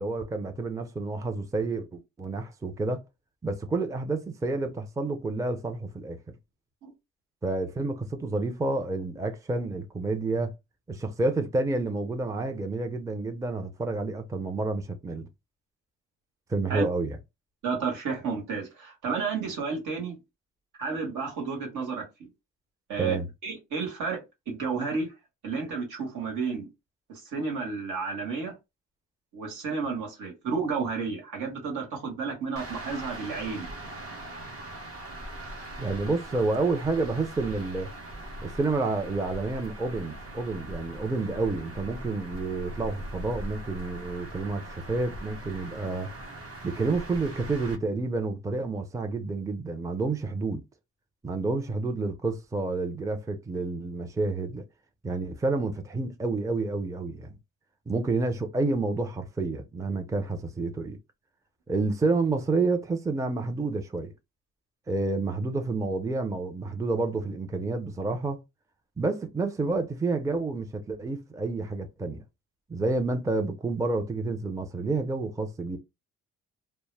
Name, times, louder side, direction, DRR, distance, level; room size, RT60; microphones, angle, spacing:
voice 1, 0.0-3.0 3.4-6.2 7.4-10.5 10.9-15.2 16.5-17.2 23.0-23.3 35.8-37.9 38.4-46.1 46.6-50.6 51.2-54.6 55.0-57.4 57.9-61.0 61.7-64.1 64.9-68.4 69.0-72.2 72.7-75.8, right 3 dB, 10° right, 0.4 m, -29 dB
voice 2, 17.6-20.2 20.8-22.3 22.9-25.1 25.4-26.7 27.1-28.5 29.3-33.7, right 5 dB, 75° right, 1.2 m, -31 dB
sound 1, 32.6-47.8, right 1 dB, 50° right, 0.8 m, -41 dB
2.1 x 2.0 x 3.2 m
cardioid pair, 90°, 30 cm